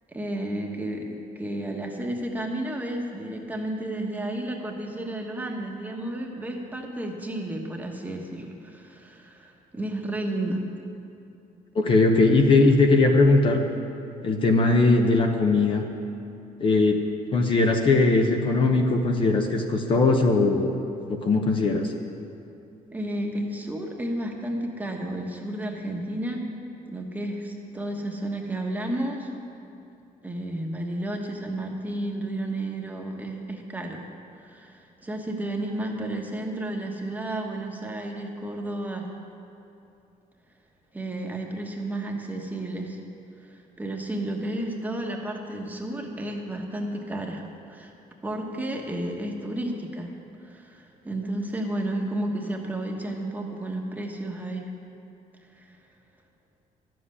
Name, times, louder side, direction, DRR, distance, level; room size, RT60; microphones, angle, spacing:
voice 1, 0.1-10.6 22.9-26.4 26.9-29.3 30.2-34.0 34.4-39.1 40.9-43.0 43.4-47.4 47.7-47.9 48.2-50.1 50.4-54.7 55.6-55.8, right 1 dB, 10° right, 1 dB, 1.3 m, -32 dB
voice 2, 11.7-13.6 14.2-15.8 16.6-17.0 17.3-20.7 21.1-21.9, left 3 dB, 35° left, 3 dB, 0.9 m, -20 dB
13.0 x 7.7 x 9.8 m, 2.7 s
cardioid pair, 165°, 15 cm